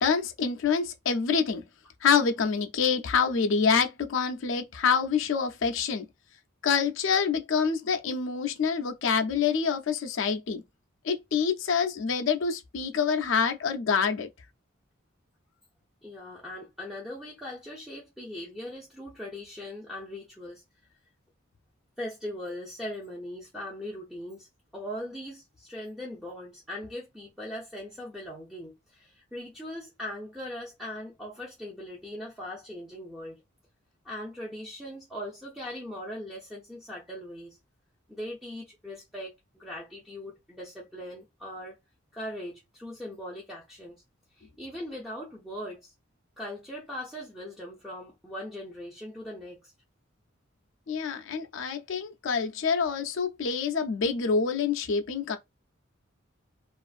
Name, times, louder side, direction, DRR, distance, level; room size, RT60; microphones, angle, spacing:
voice 1, 0.0-1.6 2.0-6.1 6.6-10.6 11.0-14.3 50.9-55.4, left 6 dB, 70° left, 0.4 m, -26 dB
voice 2, 16.0-20.6 22.0-24.5 24.7-33.4 34.0-37.6 38.1-41.8 42.1-44.0 44.3-45.9 46.4-49.7, left 1 dB, ahead, 0.5 m, -40 dB
2.4 x 2.4 x 2.4 m
head